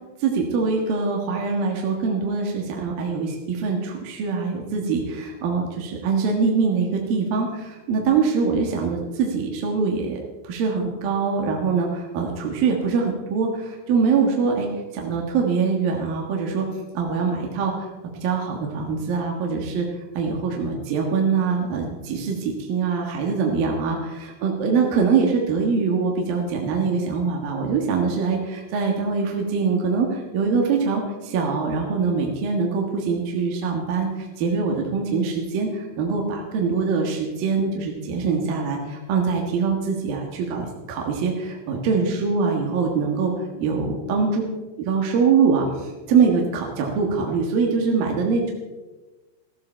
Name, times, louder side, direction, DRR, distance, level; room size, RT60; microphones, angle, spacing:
voice 1, 0.2-10.2 10.4-16.7 16.9-17.9 18.2-19.9 20.1-34.1 34.4-43.3 43.6-44.4 44.8-48.5, right 5 dB, 60° right, 0 dB, 2.9 m, -23 dB
15.0 x 15.0 x 4.3 m, 1.2 s
omnidirectional pair, 5.3 m